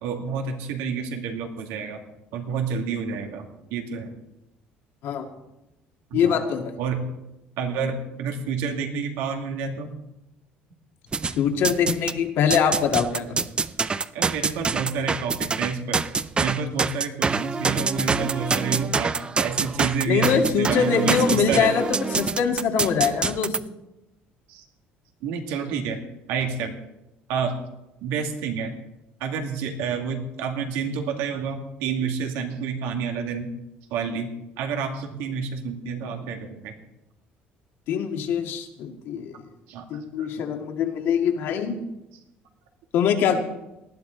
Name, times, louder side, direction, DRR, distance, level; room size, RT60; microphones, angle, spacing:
voice 1, 0.0-2.0 2.3-4.1 6.1-6.4 6.8-7.0 7.6-10.0 14.1-16.0 16.4-19.1 19.4-21.9 24.5-24.6 25.2-26.0 26.3-26.8 27.3-27.5 28.0-28.8 29.2-33.5 33.9-34.3 34.6-36.7 39.7-39.9 40.2-40.3, right 6 dB, 85° right, 4 dB, 2.2 m, -29 dB
voice 2, 6.1-6.8 11.3-13.5 20.1-23.6 37.9-39.4 39.9-41.8 42.9-43.4, left 7 dB, 65° left, 4 dB, 2.0 m, -23 dB
sound 1, 11.1-12.2 12.5-23.6, right 4 dB, 25° right, 0.5 m, -26 dB
19.0 x 12.5 x 3.9 m, 0.94 s
cardioid pair, 115°, 4 cm